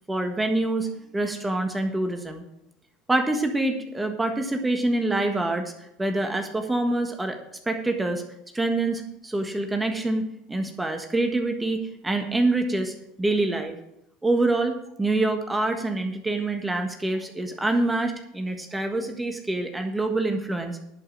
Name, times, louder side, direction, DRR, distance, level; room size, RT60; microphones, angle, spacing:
voice 1, 0.1-2.4 3.1-5.7 6.0-7.4 7.6-8.2 8.5-13.8 14.2-20.8, right 2 dB, 10° right, 5 dB, 1.5 m, -26 dB
11.0 x 5.5 x 8.6 m, 0.77 s
supercardioid pair, 100°, 0 cm